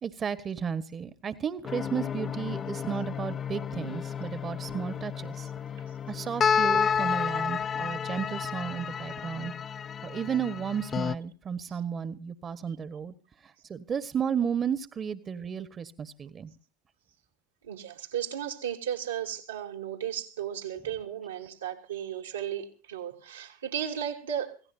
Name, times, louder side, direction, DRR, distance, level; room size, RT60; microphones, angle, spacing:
voice 1, 0.0-5.5 6.1-9.5 10.0-16.5, right 7 dB, 35° right, 1.4 m, -33 dB
sound 1, 1.6-11.1, left 7 dB, 35° left, 0.7 m, -31 dB
voice 2, 17.6-24.5, right 9 dB, 85° right, 3.1 m, -35 dB
26.5 x 17.0 x 2.8 m
hypercardioid pair, 75°, 0 cm